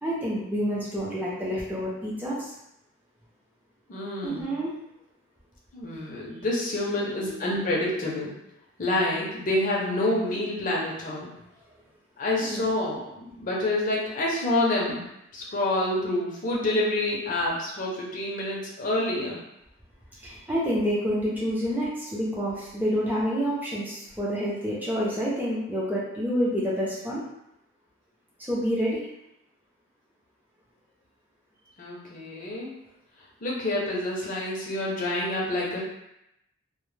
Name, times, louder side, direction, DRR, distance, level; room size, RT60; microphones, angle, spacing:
voice 1, 0.0-2.5 4.2-4.7 7.2-7.6 12.4-12.7 20.2-27.2 28.4-29.0, equal, 10° right, -6 dB, 0.5 m, -28 dB
voice 2, 3.9-4.5 5.7-8.3 8.8-11.3 12.2-15.0 15.3-19.4 31.8-32.7 33.4-35.8, left 1 dB, 40° left, -4 dB, 0.5 m, -27 dB
2.1 x 2.1 x 3.1 m, 0.84 s
head